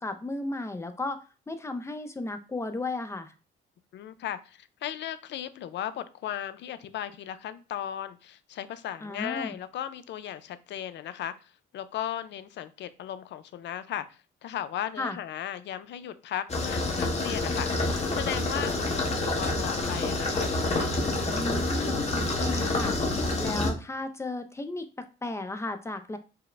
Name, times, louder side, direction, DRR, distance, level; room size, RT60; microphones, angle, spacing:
voice 1, 0.0-3.3 9.0-9.5 15.0-15.2 21.3-23.0 23.4-26.2, left 2 dB, 15° left, 8 dB, 0.5 m, -34 dB
voice 2, 3.9-20.5, left 10 dB, 65° left, 13 dB, 0.4 m, -36 dB
sound 1, 16.5-23.7, left 2 dB, 35° left, 1.0 m, -28 dB
4.7 x 2.0 x 3.2 m, 0.34 s
cardioid pair, 90°, 20 cm